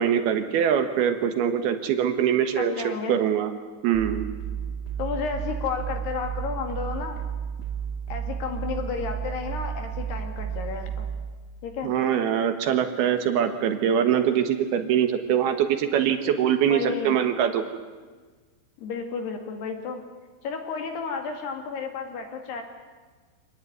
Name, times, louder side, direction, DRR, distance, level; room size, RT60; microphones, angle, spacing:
voice 1, 0.0-2.8 3.1-3.5 3.8-4.2 11.8-17.6, right 9 dB, 70° right, 8 dB, 2.6 m, -23 dB
voice 2, 2.6-3.2 5.0-7.2 8.1-11.1 11.6-11.9 16.7-17.2 18.8-20.0 20.4-22.6, left 5 dB, 60° left, 5 dB, 3.8 m, -32 dB
sound 1, 3.9-11.3, right 8 dB, 15° left, 3.3 m, -32 dB
26.5 x 19.0 x 9.6 m, 1.4 s
omnidirectional pair, 6.0 m